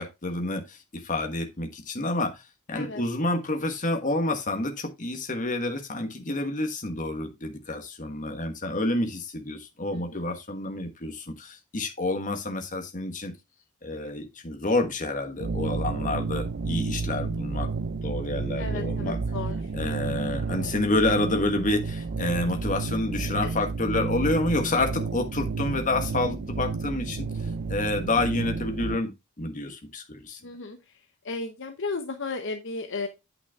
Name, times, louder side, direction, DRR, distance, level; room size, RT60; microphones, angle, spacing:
voice 1, 0.0-2.4 2.7-13.3 13.8-17.7 18.0-19.2 19.7-27.3 27.7-29.1 29.4-30.4, left 2 dB, 35° left, 1.5 m, -28 dB
voice 2, 9.9-10.3 18.6-19.6 20.0-20.1 23.2-23.5 30.4-30.8 31.2-33.1, left 3 dB, 55° left, 0.9 m, -34 dB
sound 1, 15.4-29.0, right 4 dB, 50° right, 0.4 m, -31 dB
8.8 x 5.8 x 3.6 m
head